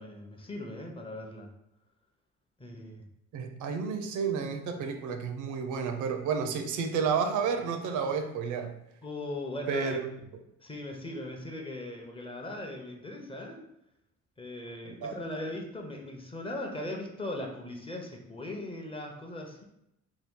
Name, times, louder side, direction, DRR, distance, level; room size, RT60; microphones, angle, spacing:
voice 1, 0.0-1.5 2.6-3.0 9.0-10.0 10.6-13.6 14.4-19.6, left 1 dB, 20° left, 1 dB, 0.6 m, -39 dB
voice 2, 3.3-8.7 9.7-10.1 14.8-15.2, right 6 dB, 75° right, 6 dB, 0.5 m, -31 dB
2.8 x 2.3 x 3.5 m, 0.82 s
cardioid pair, 90°, 30 cm